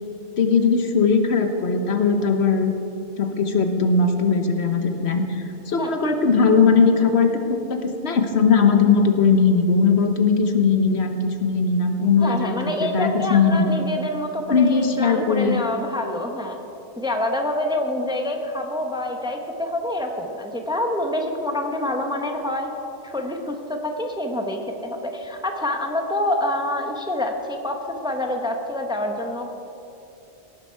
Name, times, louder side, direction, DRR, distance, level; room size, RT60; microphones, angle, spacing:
voice 1, 0.4-2.7 3.2-7.3 7.7-13.7 14.5-15.6, left 5 dB, 65° left, 6 dB, 1.3 m, -19 dB
voice 2, 12.2-16.6 17.0-22.7 23.0-27.8 28.0-29.6, left 1 dB, 5° right, 3 dB, 0.9 m, -26 dB
17.5 x 11.0 x 4.7 m, 2.9 s
omnidirectional pair, 1.2 m